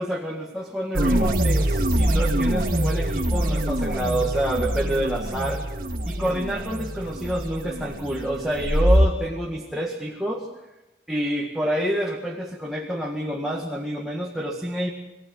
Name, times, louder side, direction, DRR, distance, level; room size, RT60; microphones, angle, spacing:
voice 1, 0.0-5.6 6.0-10.5 11.1-14.9, equal, ahead, -2 dB, 1.8 m, -28 dB
sound 1, 0.9-9.1, right 1 dB, 50° right, 2.0 m, -24 dB
24.0 x 17.0 x 7.8 m, 1.0 s
head